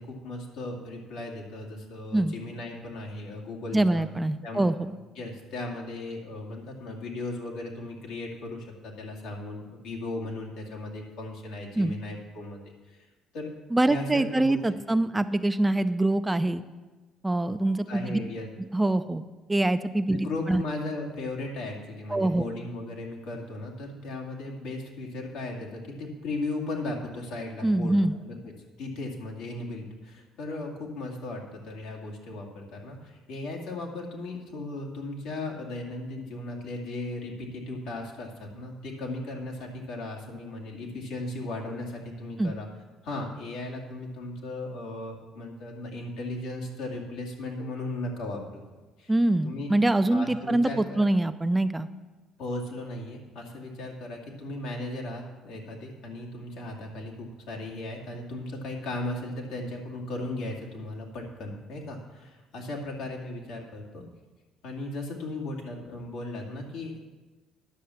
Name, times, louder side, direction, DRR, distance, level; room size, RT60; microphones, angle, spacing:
voice 1, 0.0-4.0 4.4-4.7 5.2-12.6 12.9-13.0 13.3-13.5 13.9-14.6 14.9-15.0 17.9-18.5 20.1-28.0 28.2-28.3 28.8-42.7 43.0-48.4 49.0-49.1 49.4-49.7 50.1-51.1 52.4-64.0 64.6-67.0, left 2 dB, 75° left, 0 dB, 2.3 m, -36 dB
voice 2, 3.7-4.9 11.8-11.9 13.7-16.6 17.2-18.2 18.7-19.2 19.5-20.6 22.1-22.5 27.6-28.1 42.4-42.5 49.1-51.9, right 1 dB, 15° right, 10 dB, 0.5 m, -24 dB
10.5 x 6.4 x 7.0 m, 1.2 s
supercardioid pair, 70°, 0 cm